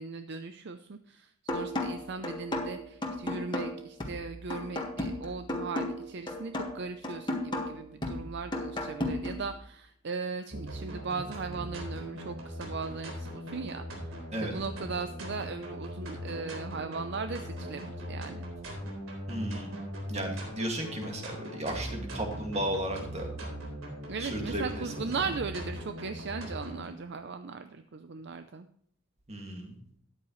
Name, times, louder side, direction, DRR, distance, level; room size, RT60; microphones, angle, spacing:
voice 1, 0.0-14.1 14.4-18.5 24.1-28.7, right 4 dB, 55° right, 9 dB, 0.6 m, -38 dB
sound 1, 1.5-9.5, left 1 dB, 20° left, 1.6 m, -35 dB
sound 2, 10.5-26.8, equal, 80° right, 3.8 m, -40 dB
voice 2, 19.3-19.7 20.1-23.3 24.2-25.1 29.3-29.8, right 1 dB, 30° right, 2 dB, 2.2 m, -34 dB
13.0 x 9.8 x 3.2 m, 0.66 s
head